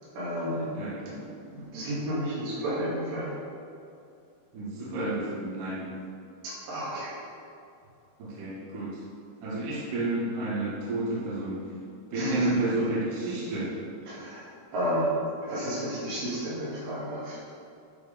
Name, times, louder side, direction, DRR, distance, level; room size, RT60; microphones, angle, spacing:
voice 1, 0.2-0.7 1.5-3.4 6.4-7.2 12.2-12.5 12.8-12.9 14.1-15.1 15.4-17.4, equal, 75° right, -8 dB, 4.4 m, -32 dB
voice 2, 0.7-1.2 4.5-5.9 8.2-9.0 9.4-11.6 12.1-13.8, right 2 dB, 55° right, -8 dB, 3.3 m, -30 dB
11.5 x 4.9 x 5.3 m, 2.5 s
omnidirectional pair, 5.0 m